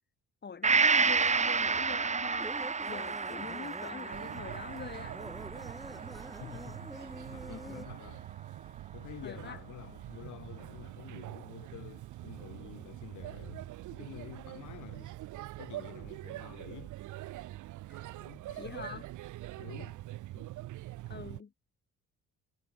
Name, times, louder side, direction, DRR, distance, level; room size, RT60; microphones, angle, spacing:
voice 1, 0.4-2.5 2.9-5.2 7.5-7.9 9.2-9.6 17.9-18.3 18.6-19.0 20.3-20.5 21.1-21.5, left 6 dB, 35° left, 2.2 m, -44 dB
Gong, 0.6-8.3 8.7-8.8, right 5 dB, 25° right, 1.0 m, -31 dB
sound 1, 2.4-7.9, equal, ahead, 2.8 m, -47 dB
Male speech man speaking / Child speech kid speaking / Chatter, 4.1-21.4, right 16 dB, 80° right, 0.9 m, -44 dB
voice 2, 6.4-8.3 8.9-13.6 13.9-15.2 15.6-16.9 18.1-19.0 19.6-20.0, left 13 dB, 75° left, 2.6 m, -49 dB
cardioid pair, 90°, 30 cm